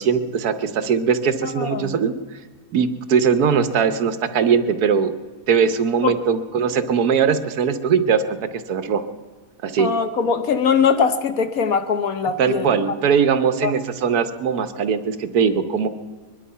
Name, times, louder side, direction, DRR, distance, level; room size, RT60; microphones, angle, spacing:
voice 1, 0.0-2.1 2.7-5.1 5.5-8.2 8.7-9.0 9.6-9.9 12.4-15.9, right 6 dB, 70° right, 1.4 m, -20 dB
voice 2, 1.4-2.0 6.0-6.2 9.8-12.8 13.6-13.7, left 6 dB, 60° left, 1.3 m, -21 dB
22.0 x 11.5 x 5.6 m
omnidirectional pair, 1.8 m